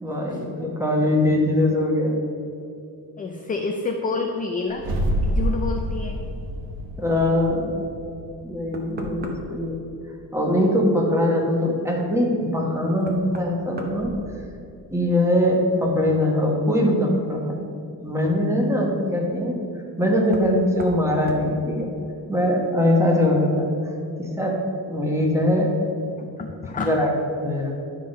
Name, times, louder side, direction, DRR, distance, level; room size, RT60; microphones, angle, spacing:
voice 1, 0.0-2.2 7.0-7.8 8.4-9.8 10.3-14.1 14.9-17.6 18.0-19.6 20.0-21.9 22.3-23.7 24.2-24.6 24.9-25.7 26.8-27.1 27.4-27.7, left 1 dB, 5° right, -1 dB, 1.1 m, -22 dB
voice 2, 3.2-4.9 5.2-6.2 26.2-26.9, left 4 dB, 25° left, 3 dB, 0.3 m, -28 dB
sound 1, 4.7-9.1, equal, 60° right, 1.1 m, -27 dB
Knock, 8.7-9.7 12.1-12.2 13.0-14.8 15.2-15.7 17.4-17.5 20.3-20.5 20.8-21.0 21.3-21.5, right 1 dB, 25° right, 0.7 m, -37 dB
11.0 x 3.7 x 5.2 m, 2.6 s
cardioid pair, 165°, 40 cm